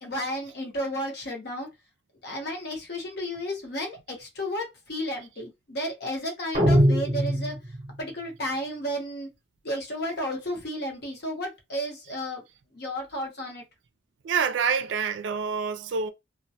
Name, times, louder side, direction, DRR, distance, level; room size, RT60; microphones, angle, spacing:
voice 1, 0.0-1.7 2.2-7.5 8.0-9.3 9.6-12.4 12.7-13.6, equal, 55° left, 0.8 m, -32 dB
sound 1, 6.5-8.0, equal, 30° right, 0.7 m, -22 dB
voice 2, 14.2-16.1, right 6 dB, 70° right, 0.4 m, -27 dB
2.1 x 2.1 x 2.7 m
head